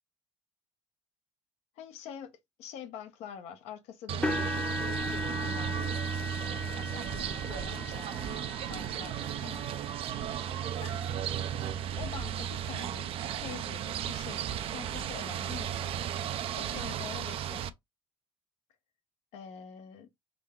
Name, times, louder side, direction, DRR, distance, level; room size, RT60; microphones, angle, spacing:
voice 1, 1.8-5.8 6.6-9.8 10.8-11.0 11.9-13.1 13.4-16.0 16.5-17.7 19.3-20.1, left 8 dB, 75° left, 0.8 m, -46 dB
sound 1, 4.1-17.7, right 9 dB, 55° right, 0.4 m, -35 dB
sound 2, 4.2-12.3 12.9-13.1 13.6-13.7 15.1-15.2, left 3 dB, 10° left, 0.3 m, -39 dB
3.7 x 2.2 x 3.6 m
supercardioid pair, 90°, 11 cm